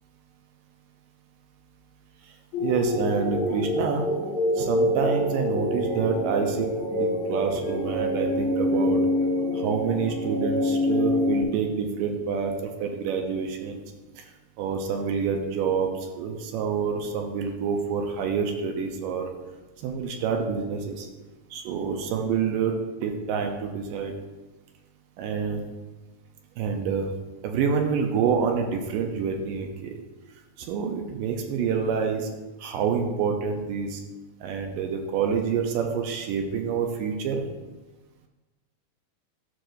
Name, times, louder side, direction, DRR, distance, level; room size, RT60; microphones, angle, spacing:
sound 1, 2.5-11.4, left 1 dB, 60° left, 1.4 m, -26 dB
voice 1, 2.6-4.0 4.6-9.0 9.5-13.8 14.2-14.3 14.6-19.3 19.8-21.1 21.5-24.1 25.2-25.6 26.6-27.1 27.4-30.0 30.6-32.3 32.6-34.0 34.4-37.4, right 6 dB, 75° right, 3 dB, 2.2 m, -27 dB
11.5 x 6.0 x 2.7 m, 1.2 s
omnidirectional pair, 4.2 m